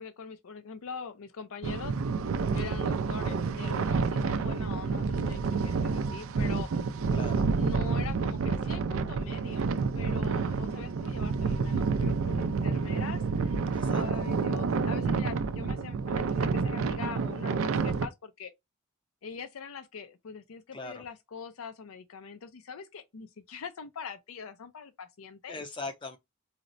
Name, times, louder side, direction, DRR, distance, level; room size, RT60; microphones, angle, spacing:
voice 1, 0.0-2.0 2.5-6.7 7.5-18.5 19.2-25.6, left 5 dB, 80° left, 0.5 m, -43 dB
sound 1, 1.6-18.1, right 4 dB, 75° right, 0.4 m, -29 dB
voice 2, 7.1-7.5 13.7-14.0 20.7-21.1 25.5-26.2, left 3 dB, 20° left, 0.5 m, -40 dB
4.1 x 2.0 x 2.5 m
head